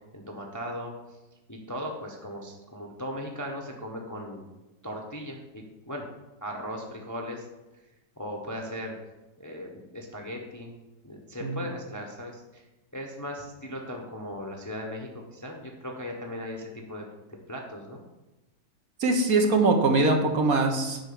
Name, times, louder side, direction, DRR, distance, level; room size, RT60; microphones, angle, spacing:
voice 1, 0.1-0.9 1.5-4.5 4.8-6.1 6.4-7.8 8.2-8.9 9.4-10.7 11.0-12.6 12.9-17.0 17.5-18.0, equal, 15° left, 0 dB, 0.9 m, -38 dB
voice 2, 19.0-21.0, right 3 dB, 60° right, 3 dB, 1.5 m, -22 dB
9.0 x 4.7 x 7.0 m, 1.0 s
omnidirectional pair, 1.8 m